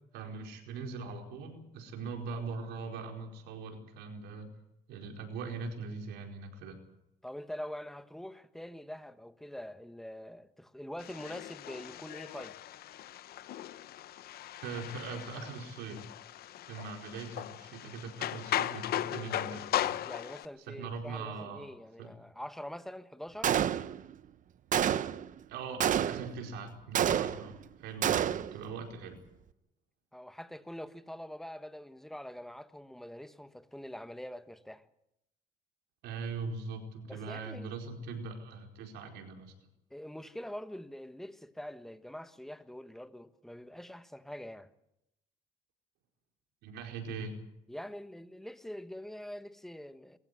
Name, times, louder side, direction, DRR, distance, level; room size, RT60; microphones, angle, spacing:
voice 1, 0.1-4.5 4.9-6.8 14.6-16.0 16.7-20.0 20.6-21.7 22.0-22.1 25.5-29.2 36.0-39.5 46.6-47.3, right 4 dB, 85° right, 4.7 m, -41 dB
voice 2, 7.2-12.6 20.0-23.5 30.1-34.9 37.1-37.7 39.9-44.7 47.7-50.2, left 1 dB, ahead, 1.3 m, -44 dB
sound 1, 11.0-20.5, left 12 dB, 65° left, 0.9 m, -38 dB
Gunshot gunfire, 23.4-24.1 24.7-25.3 25.8-26.4 26.9-27.6 28.0-28.6, right 10 dB, 50° right, 0.9 m, -29 dB
22.0 x 15.5 x 9.7 m
cardioid pair, 110°, 17 cm